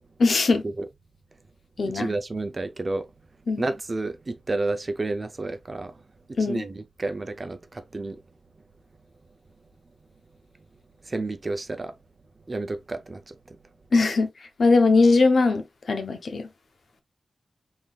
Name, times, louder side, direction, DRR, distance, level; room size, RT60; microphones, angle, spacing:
voice 1, 0.2-0.6 1.8-2.1 3.5-3.6 6.4-6.6 13.9-16.5, left 3 dB, 75° left, 0.8 m, -21 dB
voice 2, 1.9-3.1 3.6-5.9 6.5-8.2 11.1-11.9 12.5-13.4, right 2 dB, 40° right, 0.6 m, -30 dB
3.7 x 3.6 x 2.3 m
wide cardioid pair, 95°, 0 cm